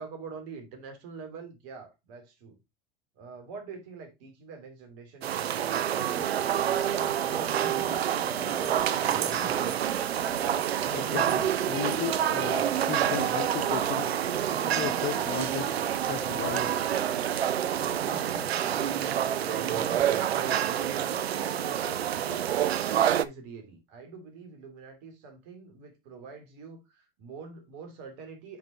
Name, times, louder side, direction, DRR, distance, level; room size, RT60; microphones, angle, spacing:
voice 1, 0.0-2.6 3.2-9.4 19.0-22.4 22.9-28.6, right 5 dB, 55° right, 2.7 m, -45 dB
sound 1, 5.2-23.3, right 10 dB, 85° right, 0.5 m, -28 dB
sound 2, 6.1-21.1 21.5-21.7, right 2 dB, 10° right, 1.7 m, -42 dB
voice 2, 10.9-14.1 14.7-15.8 16.1-16.9, left 14 dB, 35° left, 0.6 m, -35 dB
5.9 x 5.0 x 4.3 m
hypercardioid pair, 90°, 31 cm